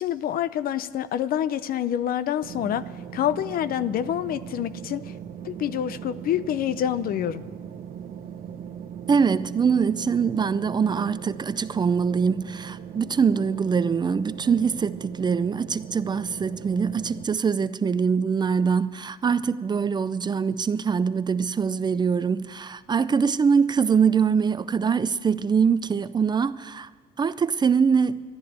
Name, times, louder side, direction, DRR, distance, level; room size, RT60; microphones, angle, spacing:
voice 1, 0.0-2.8 3.1-5.1 5.4-7.5, left 10 dB, 60° left, 0.6 m, -27 dB
sound 1, 2.4-17.2, right 8 dB, 60° right, 1.1 m, -39 dB
voice 2, 9.1-26.9 27.2-28.2, right 6 dB, 25° right, 0.5 m, -23 dB
12.5 x 10.5 x 9.5 m
cardioid pair, 110°, 17 cm